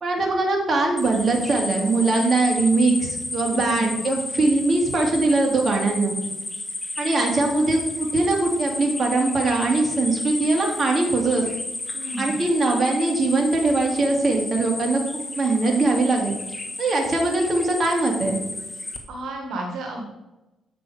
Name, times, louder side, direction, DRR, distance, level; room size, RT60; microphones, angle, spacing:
voice 1, 0.0-6.1 7.0-11.4 12.2-16.4 16.8-18.4, right 3 dB, 40° right, 0 dB, 2.4 m, -21 dB
sound 1, 1.0-19.0, left 2 dB, 15° left, 1.5 m, -32 dB
voice 2, 3.5-4.0 11.9-12.4 19.1-20.1, right 1 dB, 75° right, 0 dB, 1.7 m, -32 dB
8.6 x 6.0 x 4.9 m, 0.99 s
cardioid pair, 90°, 0 cm